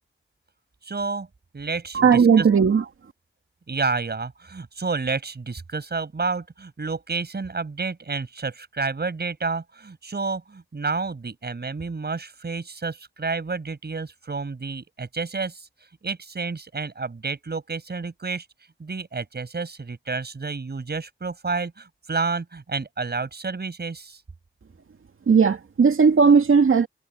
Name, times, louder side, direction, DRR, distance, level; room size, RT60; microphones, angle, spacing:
voice 1, 0.8-1.3 1.5-2.5 3.7-15.7 16.0-18.5 18.8-24.2, right 4 dB, 50° right, 6.1 m, -30 dB
voice 2, 1.9-2.8 25.3-26.9, right 5 dB, 85° right, 2.4 m, -16 dB
wide cardioid pair, 90°, 21 cm